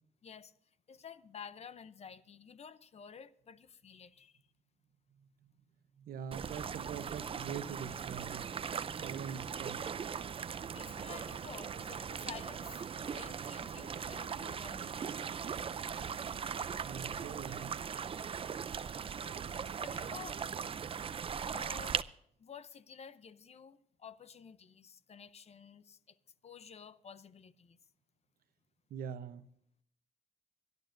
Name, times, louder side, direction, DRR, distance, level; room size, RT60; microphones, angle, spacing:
voice 1, 0.2-0.5 0.9-4.4 10.7-15.1 19.8-20.4 21.5-22.0 22.4-26.2 26.4-27.8, left 7 dB, 45° left, 0.7 m, -51 dB
voice 2, 6.0-8.5 8.9-9.9 16.8-17.8 28.9-29.5, right 7 dB, 75° right, 0.9 m, -43 dB
sound 1, 6.3-22.0, right 7 dB, 40° right, 0.5 m, -39 dB
25.0 x 12.0 x 2.6 m
cardioid pair, 110°, 15 cm